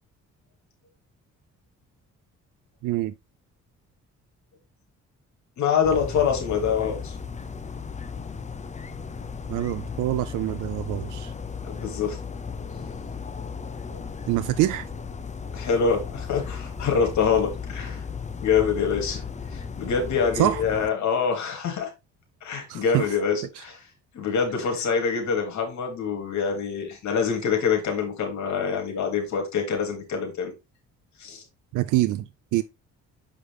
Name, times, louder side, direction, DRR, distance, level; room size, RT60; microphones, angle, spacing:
voice 1, 2.8-3.1 9.5-11.3 14.3-14.9 20.4-20.6 22.7-23.1 23.6-23.7 31.7-32.6, right 15 dB, 80° right, 0.5 m, -25 dB
voice 2, 5.6-7.2 11.6-12.2 13.9-14.0 15.5-18.0 18.4-19.2 19.5-21.9 22.4-23.8 24.1-30.5 31.2-31.4, left 6 dB, 70° left, 2.4 m, -25 dB
sound 1, 5.8-20.9, left 5 dB, 25° left, 0.7 m, -35 dB
6.8 x 4.9 x 3.4 m
cardioid pair, 90°, 30 cm